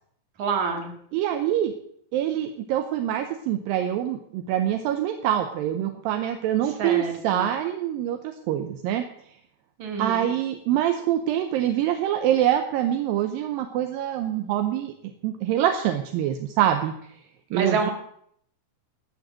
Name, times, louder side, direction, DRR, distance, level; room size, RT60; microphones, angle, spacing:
voice 1, 0.4-0.9 6.8-7.4 9.8-10.3 17.5-17.9, right 5 dB, 55° right, 3 dB, 3.0 m, -27 dB
voice 2, 1.1-1.8 2.1-9.0 10.0-14.9 15.2-16.9 17.5-17.9, right 11 dB, 80° right, 7 dB, 2.4 m, -25 dB
13.0 x 6.4 x 7.3 m, 0.67 s
omnidirectional pair, 4.3 m